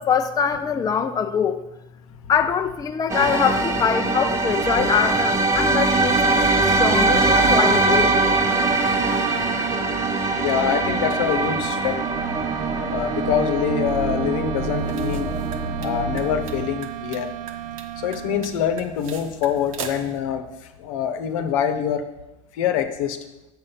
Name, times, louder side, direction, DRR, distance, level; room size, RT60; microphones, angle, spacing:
voice 1, 0.0-1.6 2.3-8.2, left 7 dB, 20° left, 7 dB, 0.5 m, -23 dB
sound 1, 3.1-16.6, right 3 dB, 15° right, 0.9 m, -22 dB
sound 2, 6.0-18.7, right 15 dB, 50° right, 0.4 m, -34 dB
voice 2, 10.3-12.0 12.9-15.4 15.8-17.3 18.0-20.5 20.8-22.0 22.5-23.2, left 9 dB, 75° left, 8 dB, 1.0 m, -25 dB
sound 3, 14.7-20.2, right 5 dB, 85° right, 1.1 m, -39 dB
7.1 x 6.3 x 5.6 m, 0.98 s
supercardioid pair, 110°, 17 cm